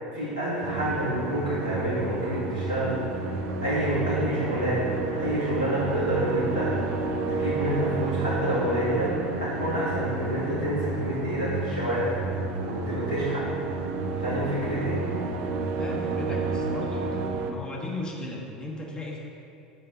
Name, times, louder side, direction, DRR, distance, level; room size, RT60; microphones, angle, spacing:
voice 1, 0.1-3.1 3.6-6.8 7.3-12.2 12.6-13.5 14.2-15.1, equal, 85° left, -9 dB, 1.9 m, -28 dB
sound 1, 0.6-17.5, right 3 dB, 50° right, 0.7 m, -30 dB
voice 2, 15.8-17.1 17.5-19.2, left 2 dB, 20° left, -2 dB, 1.7 m, -35 dB
7.9 x 5.0 x 5.6 m, 2.6 s
figure-of-eight pair, 75°, 4 cm